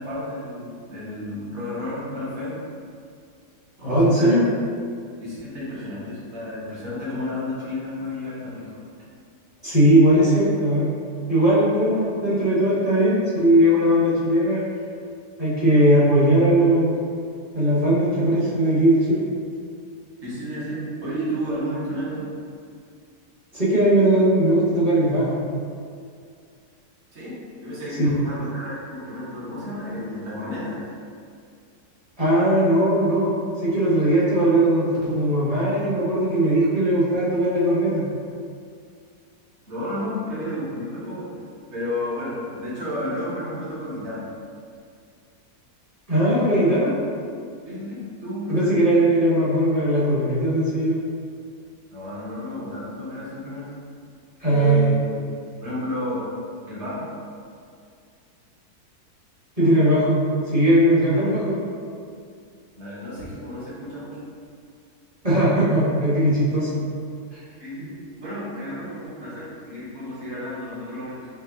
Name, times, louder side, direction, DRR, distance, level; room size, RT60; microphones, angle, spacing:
voice 1, 0.0-2.6 3.8-4.4 5.2-8.7 20.2-22.3 27.1-31.0 39.7-41.3 41.7-44.3 47.6-49.0 51.9-53.7 54.4-55.0 55.6-56.3 56.7-57.1 59.6-59.9 61.1-61.3 62.8-64.2 67.6-71.3, left 1 dB, 50° right, -8 dB, 1.4 m, -32 dB
voice 2, 3.8-4.4 9.6-10.9 11.3-14.6 15.4-17.0 17.5-19.3 23.5-25.5 28.0-28.1 32.2-38.1 46.1-47.0 48.5-51.0 54.4-54.8 59.6-61.6 65.2-66.8 67.3-67.4, right 1 dB, 25° right, -10 dB, 1.0 m, -19 dB
4.5 x 3.1 x 2.7 m, 2.3 s
omnidirectional pair, 1.6 m